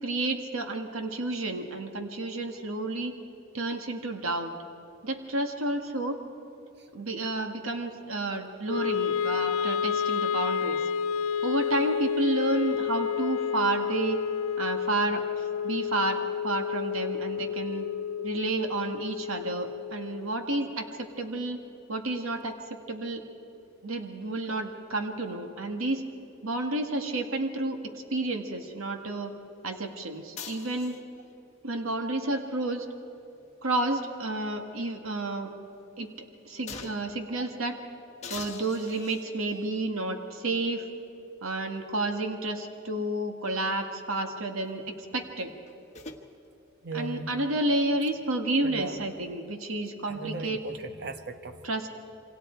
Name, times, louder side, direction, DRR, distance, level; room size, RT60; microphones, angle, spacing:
voice 1, 0.0-3.1 3.5-4.5 5.0-6.2 6.9-10.9 11.4-14.2 14.6-17.9 18.2-21.6 21.9-23.2 23.8-26.0 26.4-27.8 28.1-29.3 29.6-31.0 31.6-32.9 33.6-35.5 36.0-36.1 36.5-37.8 38.3-40.9 41.4-45.5 46.9-50.6 51.6-51.9, right 2 dB, 85° right, 4 dB, 1.7 m, -30 dB
Wind instrument woodwind instrument, 8.7-20.9, left 8 dB, 90° left, 0.5 m, -30 dB
sound 1, 30.4-31.3 33.1-34.6 35.0-35.1 36.7-37.2 38.2-39.8 40.7-40.8 45.4-46.2, left 5 dB, 35° left, 1.5 m, -44 dB
voice 2, 37.1-37.4 46.8-47.3 48.6-49.0 50.1-51.6, right 2 dB, 55° right, 8 dB, 1.2 m, -37 dB
28.5 x 25.0 x 4.5 m, 2.9 s
head